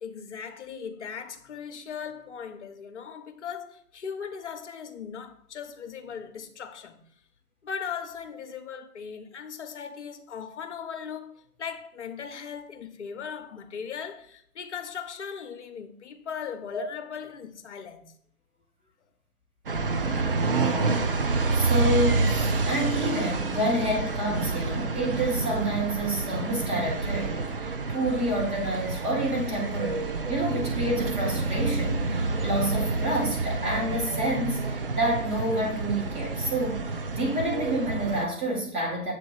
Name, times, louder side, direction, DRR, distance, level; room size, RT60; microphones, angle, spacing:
voice 1, 0.0-7.0 7.6-18.1, left 7 dB, 50° left, 0.8 m, -38 dB
sound 1, 19.7-38.3, right 3 dB, 40° right, 0.4 m, -28 dB
voice 2, 20.5-21.0 21.5-36.8 37.1-39.1, right 1 dB, 15° right, 1.2 m, -29 dB
7.3 x 3.0 x 4.6 m
figure-of-eight pair, 135°, 46 cm